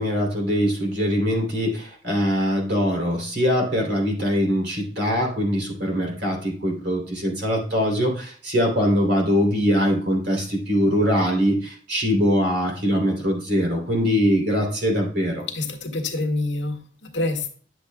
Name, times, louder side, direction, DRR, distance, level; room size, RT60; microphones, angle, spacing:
voice 1, 0.0-15.4, equal, 55° right, 0 dB, 3.2 m, -22 dB
voice 2, 15.5-17.5, left 2 dB, 70° left, 4 dB, 1.5 m, -27 dB
10.0 x 7.0 x 2.2 m, 0.43 s
head